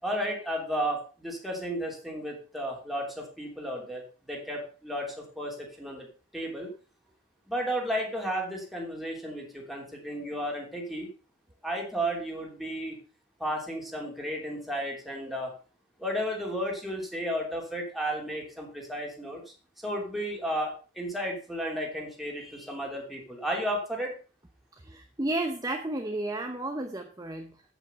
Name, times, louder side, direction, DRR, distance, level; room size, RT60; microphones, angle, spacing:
voice 1, 0.0-4.0 4.3-6.1 6.3-6.7 7.5-11.1 11.6-13.0 13.4-15.5 16.0-19.4 19.8-24.1, equal, ahead, -1 dB, 2.9 m, -33 dB
voice 2, 24.8-27.6, right 2 dB, 20° right, 5 dB, 0.8 m, -32 dB
8.5 x 8.0 x 5.7 m, 0.37 s
head